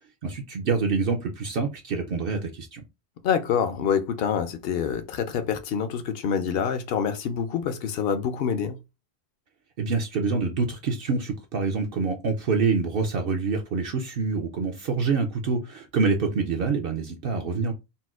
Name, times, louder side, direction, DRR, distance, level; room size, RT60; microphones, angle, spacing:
voice 1, 0.2-2.8 9.8-17.7, right 4 dB, 65° right, 0.7 m, -26 dB
voice 2, 3.2-8.8, left 7 dB, 65° left, 0.7 m, -26 dB
4.0 x 2.2 x 2.3 m
omnidirectional pair, 1.1 m